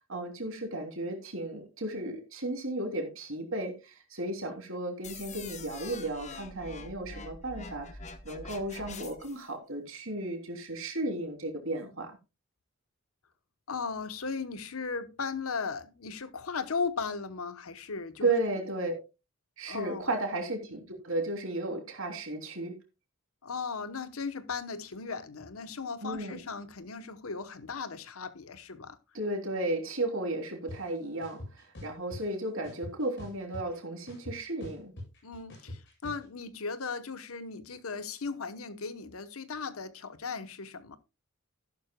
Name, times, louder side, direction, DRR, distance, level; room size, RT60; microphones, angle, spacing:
voice 1, 0.1-8.0 8.2-12.2 18.2-19.0 19.6-22.7 26.0-26.4 29.1-34.9, right 2 dB, 65° right, 3.1 m, -34 dB
sound 1, 5.0-9.4, left 4 dB, 30° left, 1.0 m, -45 dB
voice 2, 13.7-18.3 19.7-20.1 23.4-29.0 35.2-41.0, left 5 dB, 75° left, 1.0 m, -37 dB
sound 2, 30.7-30.8 31.2-32.2 32.6-33.8 34.1-36.2, left 1 dB, 55° left, 7.4 m, -43 dB
13.5 x 11.5 x 2.3 m
head